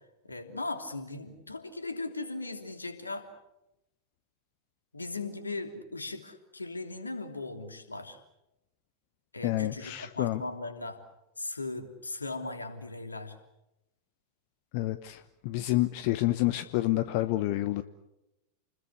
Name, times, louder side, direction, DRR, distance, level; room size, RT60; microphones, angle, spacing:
voice 1, 0.2-3.3 4.9-8.2 9.3-11.0 11.4-13.4, left 2 dB, 80° left, 7 dB, 3.0 m, -38 dB
voice 2, 9.4-10.4 14.7-17.8, left 17 dB, 45° left, 13 dB, 1.0 m, -28 dB
29.5 x 21.0 x 8.3 m, 0.93 s
figure-of-eight pair, 90°, 0 cm